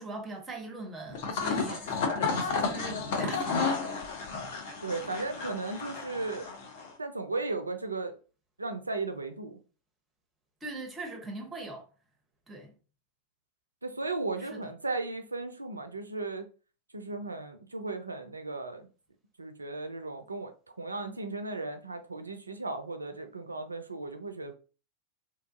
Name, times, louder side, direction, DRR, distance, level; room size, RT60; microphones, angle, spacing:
voice 1, 0.0-3.8 10.6-11.8 12.5-12.7 14.5-14.7, right 2 dB, 15° right, 0.7 m, -41 dB
sound 1, 1.1-6.9, left 4 dB, 50° left, 0.6 m, -32 dB
voice 2, 4.8-6.5 7.0-8.2 8.6-9.6 13.8-16.5 16.9-18.9 19.4-20.5 20.8-24.5, right 3 dB, 80° right, 0.3 m, -36 dB
2.8 x 2.3 x 2.5 m
figure-of-eight pair, 90°, 0 cm